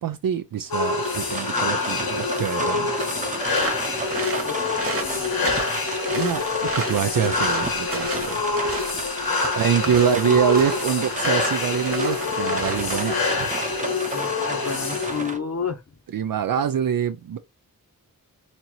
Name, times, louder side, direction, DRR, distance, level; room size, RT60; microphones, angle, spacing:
voice 1, 0.0-2.9 6.1-6.4 6.7-8.5 9.5-13.5 16.1-17.4, right 8 dB, 70° right, 0.5 m, -24 dB
sound 1, 0.7-15.3, left 4 dB, 80° left, 1.2 m, -26 dB
sound 2, 1.0-15.4, right 3 dB, 20° right, 0.7 m, -33 dB
sound 3, 3.5-13.8, right 3 dB, 40° right, 1.3 m, -33 dB
voice 2, 4.9-5.9 9.3-9.6 10.0-10.4 14.1-15.8, left 6 dB, 45° left, 0.9 m, -32 dB
4.4 x 2.7 x 2.9 m
wide cardioid pair, 115°, 36 cm